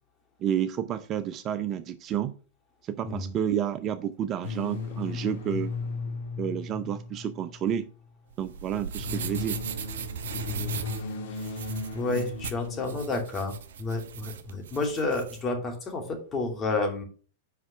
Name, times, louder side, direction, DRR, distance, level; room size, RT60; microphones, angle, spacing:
voice 1, 0.4-2.3 2.8-5.7 6.4-7.9 8.4-9.6, right 9 dB, 35° right, 0.5 m, -30 dB
sound 1, 4.4-7.8 8.7-13.5, left 4 dB, 65° left, 1.6 m, -36 dB
sound 2, 8.3-15.4, right 7 dB, 70° right, 0.9 m, -39 dB
voice 2, 11.9-17.0, left 3 dB, 25° left, 2.6 m, -30 dB
5.8 x 5.4 x 5.9 m
hypercardioid pair, 105°, 0 cm